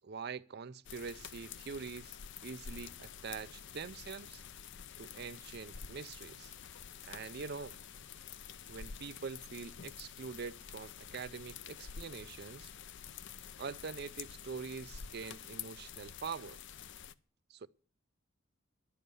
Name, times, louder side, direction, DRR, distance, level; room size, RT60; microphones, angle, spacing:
voice 1, 0.0-4.4 5.0-6.5 7.0-7.8 8.7-12.7 13.6-16.6 17.5-17.7, right 5 dB, 50° right, 0.5 m, -44 dB
sound 1, 0.8-17.1, left 8 dB, 55° left, 0.6 m, -49 dB
11.0 x 7.2 x 9.6 m
head